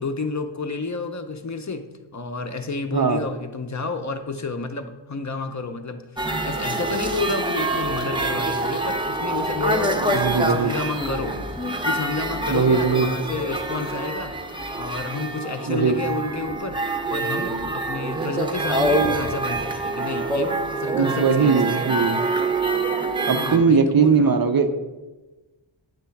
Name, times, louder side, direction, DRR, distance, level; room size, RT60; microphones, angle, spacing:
voice 1, 0.0-1.8 2.1-11.4 11.8-14.3 14.8-16.8 17.1-21.8 23.3-24.4, left 3 dB, 40° left, 6 dB, 0.5 m, -30 dB
sound 1, 6.2-23.6, right 2 dB, 10° right, 0.6 m, -26 dB
voice 2, 10.1-10.7 12.5-13.1 15.7-16.0 20.9-22.2 23.3-24.7, right 5 dB, 50° right, 8 dB, 0.6 m, -19 dB
8.9 x 3.1 x 5.7 m, 1.2 s
wide cardioid pair, 65°, 48 cm